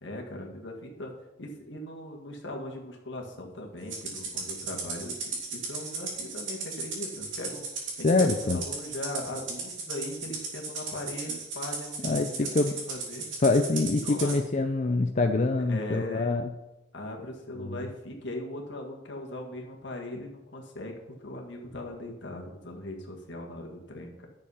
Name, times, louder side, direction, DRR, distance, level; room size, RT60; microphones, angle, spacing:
voice 1, 0.0-1.1 1.4-7.6 8.0-12.5 12.9-13.3 14.0-14.4 15.7-16.4 16.9-24.3, left 1 dB, 60° left, 0 dB, 1.8 m, -39 dB
Rattle (instrument), 3.9-14.4, right 4 dB, 80° right, 2.9 m, -36 dB
voice 2, 8.0-8.6 12.0-12.8 13.4-16.5 17.6-17.8, left 3 dB, 40° left, 5 dB, 0.5 m, -25 dB
10.5 x 6.6 x 5.6 m, 1.0 s
head